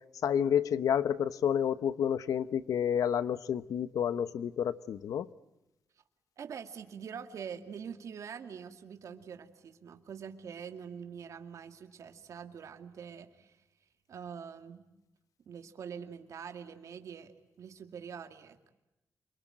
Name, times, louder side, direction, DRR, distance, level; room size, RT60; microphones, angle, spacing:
voice 1, 0.2-5.3, left 8 dB, 80° left, 15 dB, 1.0 m, -30 dB
voice 2, 6.4-13.6 14.1-14.8 15.5-18.7, right 7 dB, 65° right, 6 dB, 2.3 m, -45 dB
28.5 x 23.5 x 8.9 m, 0.92 s
wide cardioid pair, 145°, 6 cm